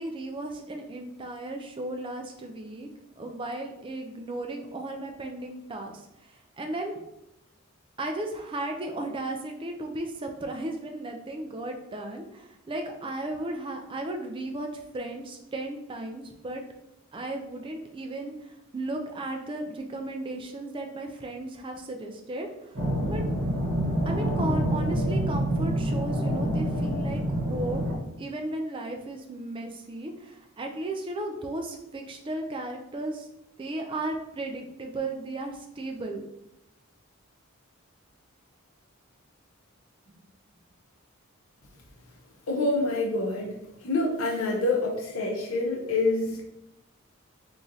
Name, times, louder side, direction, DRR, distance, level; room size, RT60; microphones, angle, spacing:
voice 1, 0.0-2.9 3.2-7.0 8.0-16.6 17.1-22.8 23.1-23.2 24.1-27.9 28.2-33.3 33.6-36.2, right 2 dB, 25° right, 4 dB, 0.3 m, -35 dB
sound 1, 22.7-28.0, right 1 dB, 85° right, 1.0 m, -27 dB
voice 2, 42.5-43.5 43.8-46.4, left 2 dB, 75° left, -1 dB, 0.8 m, -26 dB
3.8 x 3.0 x 2.6 m, 0.86 s
head